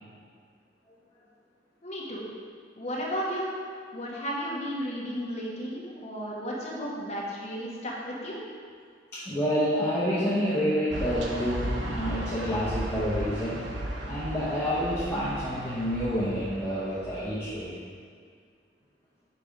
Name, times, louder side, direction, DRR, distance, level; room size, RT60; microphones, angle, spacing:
voice 1, 1.8-2.2 2.8-3.5 3.9-8.4, equal, 40° left, -4 dB, 1.2 m, -33 dB
voice 2, 9.1-13.6 14.1-17.8, equal, 15° left, -10 dB, 1.0 m, -28 dB
sound 1, 10.9-17.6, right 1 dB, 80° right, 0.7 m, -35 dB
5.5 x 4.2 x 5.0 m, 2.1 s
head